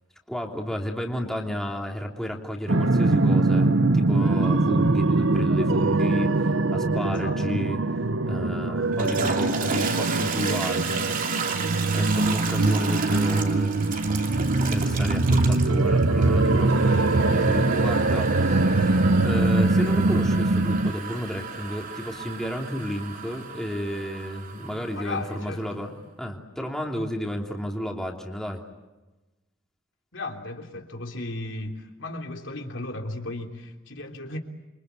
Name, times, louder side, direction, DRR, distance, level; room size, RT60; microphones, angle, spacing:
voice 1, 0.3-8.0 8.3-11.6 11.9-14.0 14.7-18.7 19.2-28.6, equal, ahead, 0 dB, 3.1 m, -32 dB
sound 1, 2.7-20.9, right 2 dB, 70° right, 0.9 m, -22 dB
voice 2, 6.9-7.4 24.9-25.6 30.1-34.4, left 2 dB, 65° left, 3 dB, 3.4 m, -35 dB
Toilet flush, 8.8-25.6, right 5 dB, 45° right, 2.8 m, -33 dB
28.5 x 25.0 x 8.3 m, 1.1 s
head